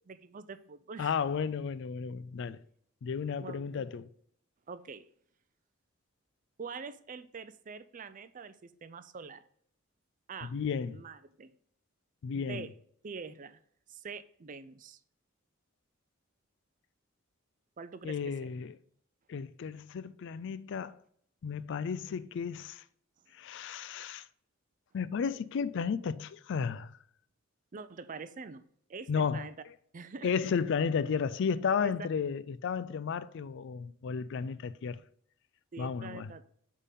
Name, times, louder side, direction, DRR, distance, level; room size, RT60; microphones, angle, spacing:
voice 1, 0.0-1.2 3.4-3.9 4.7-5.1 6.6-9.4 10.3-10.6 10.9-11.5 12.3-12.8 13.0-13.6 13.9-15.0 17.8-18.3 27.7-28.6 28.9-29.5 29.9-30.3 31.8-31.9 35.7-36.4, right 5 dB, 40° right, 0.5 m, -45 dB
voice 2, 1.0-2.6 3.0-4.1 10.4-11.0 12.2-12.6 18.0-18.7 19.3-21.0 21.4-22.8 23.3-24.3 24.9-27.0 29.1-29.5 30.2-35.0 35.8-36.3, left 6 dB, 60° left, 0.4 m, -33 dB
8.4 x 3.7 x 5.2 m
head